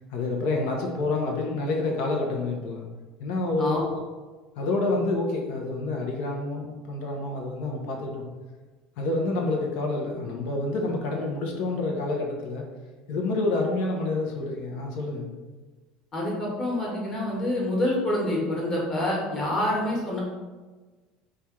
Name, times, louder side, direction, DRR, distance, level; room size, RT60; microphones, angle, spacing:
voice 1, 0.1-2.9 3.2-3.9 4.6-8.2 9.0-12.6 13.1-15.3, left 2 dB, 70° left, 0 dB, 0.8 m, -28 dB
voice 2, 16.1-20.2, left 1 dB, 30° left, -4 dB, 1.3 m, -27 dB
3.3 x 2.4 x 4.4 m, 1.3 s
cardioid pair, 135°, 2 cm